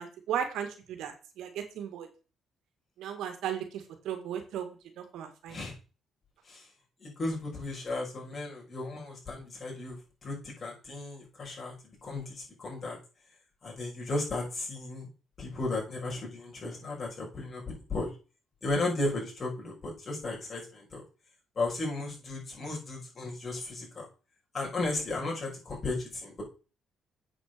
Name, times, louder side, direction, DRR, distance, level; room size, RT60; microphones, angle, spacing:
voice 1, 0.0-2.1 3.0-4.7 5.0-5.6, right 9 dB, 85° right, 6 dB, 2.1 m, -36 dB
voice 2, 7.0-13.0 13.6-15.1 15.4-18.1 18.6-21.0 21.6-24.1 24.5-26.4, left 2 dB, 40° left, -2 dB, 5.8 m, -35 dB
8.3 x 5.5 x 6.8 m, 0.35 s
cardioid pair, 90°, 0 cm